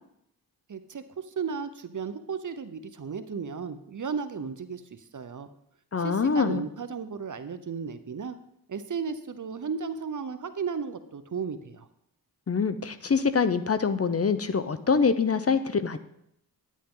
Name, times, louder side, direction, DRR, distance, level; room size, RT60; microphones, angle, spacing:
voice 1, 0.7-5.5 6.0-8.4 8.7-11.9, right 6 dB, 50° right, 11 dB, 0.8 m, -34 dB
voice 2, 5.9-6.6 12.5-16.0, left 5 dB, 40° left, 12 dB, 0.7 m, -25 dB
10.0 x 8.4 x 3.8 m, 0.75 s
cardioid pair, 55°, 39 cm